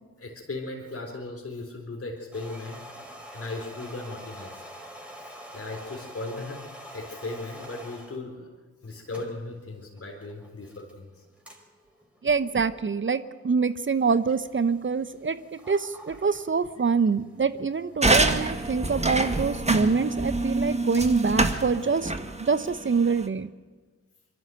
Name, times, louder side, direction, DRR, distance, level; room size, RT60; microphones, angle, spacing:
voice 1, 0.2-4.6 5.2-8.5 8.8-11.2, left 2 dB, 45° left, 0 dB, 3.8 m, -37 dB
sound 1, 2.2-8.2 8.8-19.3, equal, 5° right, 5.3 m, -47 dB
voice 2, 12.2-23.5, right 5 dB, 35° right, 13 dB, 1.0 m, -25 dB
sound 2, 18.0-23.3, right 2 dB, 20° right, 2.0 m, -26 dB
23.0 x 12.5 x 9.1 m, 1.4 s
supercardioid pair, 45°, 32 cm